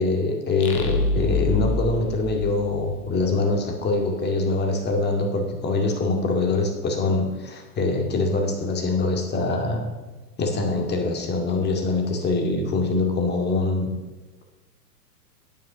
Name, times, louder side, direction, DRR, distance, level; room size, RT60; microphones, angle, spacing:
voice 1, 0.0-9.9 10.4-13.9, left 3 dB, 20° left, 3 dB, 2.2 m, -24 dB
sound 1, 0.6-3.2, left 2 dB, 60° left, 2.0 m, -26 dB
9.2 x 9.1 x 6.8 m, 1.2 s
hypercardioid pair, 110°, 49 cm